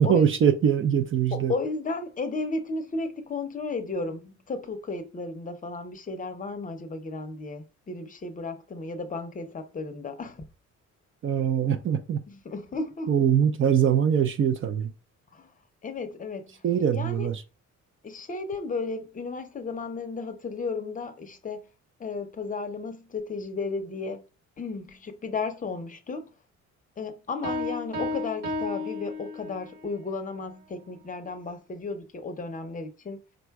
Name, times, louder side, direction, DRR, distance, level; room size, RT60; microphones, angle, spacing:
voice 1, 0.0-1.5 11.2-12.2 13.1-14.9 16.6-17.4, right 8 dB, 45° right, 0.5 m, -22 dB
voice 2, 1.3-10.5 12.3-13.1 15.3-15.5 15.8-16.6 16.9-17.3 18.0-21.7 22.0-24.2 24.6-26.3 27.0-33.2, left 3 dB, 25° left, 0.6 m, -34 dB
Piano, 27.4-29.8, left 2 dB, 85° right, 1.5 m, -32 dB
5.1 x 2.2 x 4.5 m
cardioid pair, 155°, 30 cm